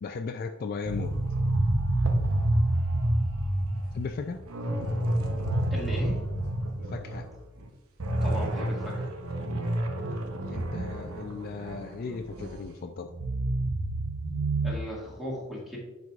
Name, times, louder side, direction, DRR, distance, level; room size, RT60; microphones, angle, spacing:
voice 1, 0.0-1.1 3.9-4.4 6.9-7.2 10.5-13.1, left 4 dB, 45° left, 6 dB, 0.3 m, -36 dB
sound 1, 0.8-7.3 7.6-7.7 8.0-12.6 13.1-14.7, right 1 dB, 85° right, 0.8 m, -28 dB
voice 2, 5.7-6.2 8.2-9.0 14.6-15.8, left 1 dB, ahead, -5 dB, 1.8 m, -36 dB
10.5 x 4.7 x 2.4 m, 1.1 s
head